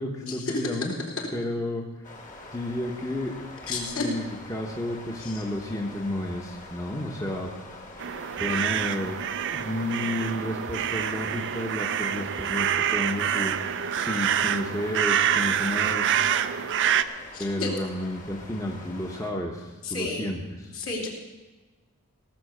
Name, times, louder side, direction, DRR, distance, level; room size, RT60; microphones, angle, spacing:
voice 1, 0.0-1.8 2.5-7.5 8.4-9.2 9.5-13.6 13.9-16.1 17.4-20.7, left 1 dB, 15° left, 0 dB, 1.0 m, -32 dB
sound 1, 2.0-19.3, left 2 dB, 35° left, 1.6 m, -45 dB
voice 2, 3.7-4.1 5.2-5.4 17.3-17.7 19.8-20.2 20.7-21.1, left 3 dB, 65° left, -3 dB, 3.1 m, -32 dB
sound 2, 8.0-17.0, right 9 dB, 55° right, 0.5 m, -26 dB
18.0 x 6.7 x 6.6 m, 1.2 s
head